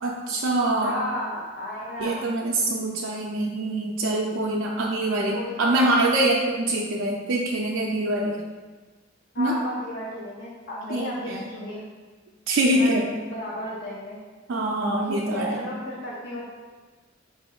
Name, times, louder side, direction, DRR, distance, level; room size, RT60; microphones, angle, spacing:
voice 1, 0.0-1.0 2.0-8.4 9.4-9.5 10.9-11.4 12.5-13.1 14.5-15.6, right 1 dB, 85° right, -2 dB, 0.4 m, -24 dB
voice 2, 0.8-2.3 5.3-5.9 6.3-6.6 9.3-11.9 12.7-12.9 13.2-14.2 15.0-16.5, left 1 dB, 55° left, -5 dB, 0.6 m, -34 dB
4.1 x 2.5 x 3.7 m, 1.3 s
head